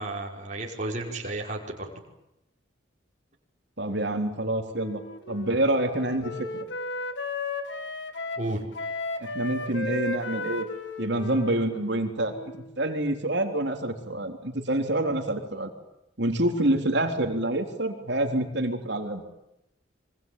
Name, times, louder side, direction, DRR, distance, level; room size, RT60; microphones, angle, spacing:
voice 1, 0.0-1.9 8.4-8.7, right 2 dB, 40° right, 0 dB, 5.5 m, -32 dB
voice 2, 3.8-5.0 5.3-6.3 9.2-10.7 11.0-15.7 16.2-19.2, right 1 dB, 60° right, 4 dB, 3.8 m, -27 dB
Wind instrument woodwind instrument, 4.7-12.8, left 3 dB, 70° left, 2.2 m, -35 dB
26.0 x 24.5 x 9.3 m, 0.86 s
head